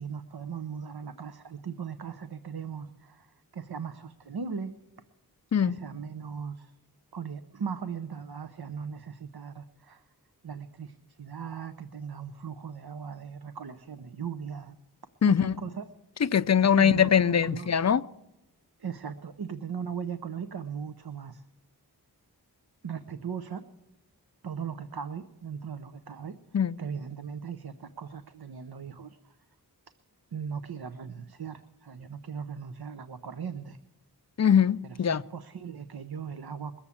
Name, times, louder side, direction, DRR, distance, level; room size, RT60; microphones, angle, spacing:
voice 1, 0.0-4.7 5.6-6.7 7.1-10.0 10.4-14.8 15.3-15.9 16.6-17.7 18.8-21.4 22.8-23.6 24.4-26.4 26.8-29.4 30.3-33.8 34.8-36.7, right 6 dB, 70° right, 0.7 m, -38 dB
voice 2, 15.2-15.5 16.2-18.0 26.5-26.8 34.4-35.2, left 8 dB, 45° left, 0.5 m, -22 dB
21.5 x 7.2 x 8.5 m
wide cardioid pair, 45°, 39 cm